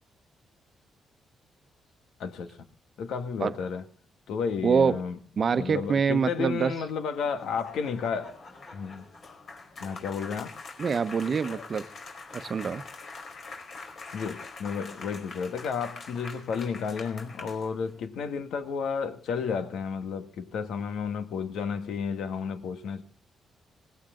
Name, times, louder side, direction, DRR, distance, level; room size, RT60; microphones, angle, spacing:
voice 1, 2.2-2.6 3.0-3.8 4.3-5.2 5.6-8.4 8.7-9.1 9.8-10.5 14.1-23.0, left 6 dB, 80° left, 1.9 m, -32 dB
voice 2, 4.6-5.0 5.4-6.7 10.8-11.8 12.3-12.8, right 6 dB, 45° right, 1.0 m, -25 dB
sound 1, 7.0-18.0, left 4 dB, 50° left, 4.8 m, -44 dB
19.0 x 16.5 x 3.9 m
cardioid pair, 110°, 0 cm